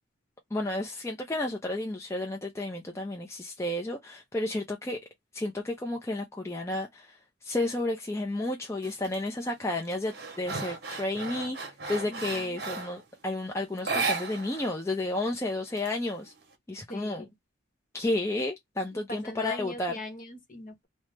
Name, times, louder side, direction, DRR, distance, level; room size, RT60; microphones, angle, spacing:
voice 1, 0.5-5.0 5.3-11.6 11.9-16.3 16.7-17.2 17.9-20.0, left 2 dB, 15° left, 0.4 m, -32 dB
sound 1, 8.8-9.2 9.6-13.0 13.8-14.7 15.0-15.1 15.5-16.4, right 4 dB, 55° right, 0.9 m, -34 dB
voice 2, 12.1-12.6 16.9-17.3 18.9-20.9, left 1 dB, 45° left, 0.9 m, -41 dB
2.9 x 2.0 x 3.2 m
head